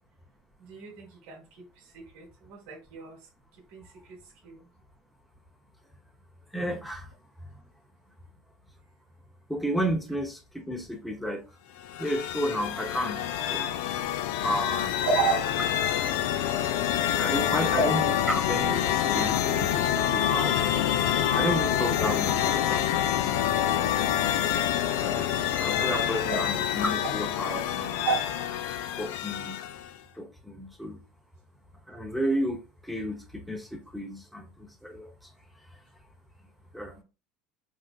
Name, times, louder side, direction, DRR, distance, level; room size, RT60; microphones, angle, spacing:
voice 1, 0.6-1.6 1.9-3.2 3.7-4.2 4.4-4.7 15.0-15.4 17.8-17.9 26.3-26.4 28.0-28.2, right 4 dB, 70° right, 1.1 m, -30 dB
voice 2, 6.5-7.1 9.5-11.4 12.0-13.7 14.4-14.9 17.1-20.9 21.3-23.0 25.0-28.0 29.0-29.6 30.1-31.0 31.9-35.3 36.7-37.0, equal, ahead, 0.4 m, -32 dB
sound 1, 11.8-30.0, left 10 dB, 75° left, 0.3 m, -27 dB
3.6 x 2.4 x 2.2 m
cardioid pair, 165°, 0 cm